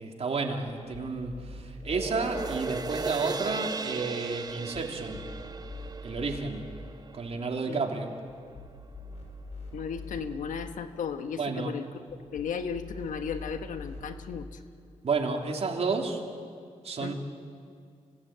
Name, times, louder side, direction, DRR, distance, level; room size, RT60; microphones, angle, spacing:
voice 1, 0.0-5.2 6.0-6.6 7.1-8.2 11.4-11.8 15.0-16.2 16.8-17.1, right 4 dB, 55° right, 2 dB, 3.1 m, -31 dB
sound 1, 0.7-2.6 4.5-6.4 8.3-10.2 12.1-14.0, left 2 dB, 60° left, 6.2 m, -44 dB
sound 2, 1.8-8.4 8.9-9.0, right 3 dB, 30° right, 1.1 m, -37 dB
voice 2, 9.7-11.9 12.3-14.6 17.0-17.1, left 6 dB, 90° left, 8 dB, 1.3 m, -35 dB
27.0 x 18.0 x 8.9 m, 2.2 s
cardioid pair, 75°, 13 cm